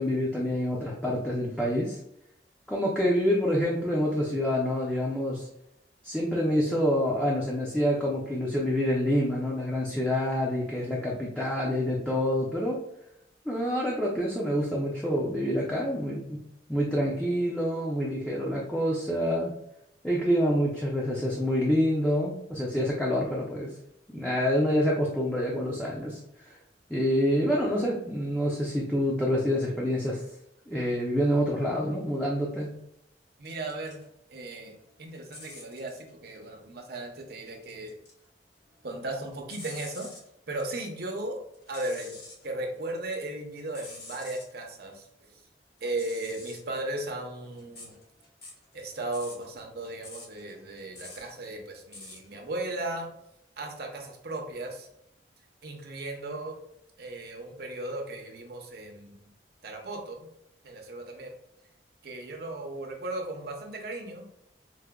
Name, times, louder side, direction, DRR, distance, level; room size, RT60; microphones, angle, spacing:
voice 1, 0.0-2.0 2.7-5.5 6.0-12.8 13.5-16.4 16.7-19.5 20.0-23.7 24.1-26.5 26.9-30.2 30.7-32.7, equal, 5° left, -5 dB, 0.4 m, -27 dB
sound 1, 33.4-34.0 34.4-36.1 37.3-38.3 38.6-40.3 41.5-42.4 42.9-44.5 45.8-52.3, left 2 dB, 60° left, 1.2 m, -48 dB
voice 2, 33.4-34.0 34.3-34.7 35.0-38.0 38.8-40.1 40.5-41.4 41.7-42.2 42.4-45.1 45.3-45.4 45.8-47.9 48.7-53.1 53.6-54.9 55.6-56.6 57.0-59.3 59.6-60.3 60.6-61.4 62.0-64.2, right 2 dB, 60° right, 2 dB, 0.7 m, -36 dB
4.7 x 2.1 x 2.2 m, 0.79 s
head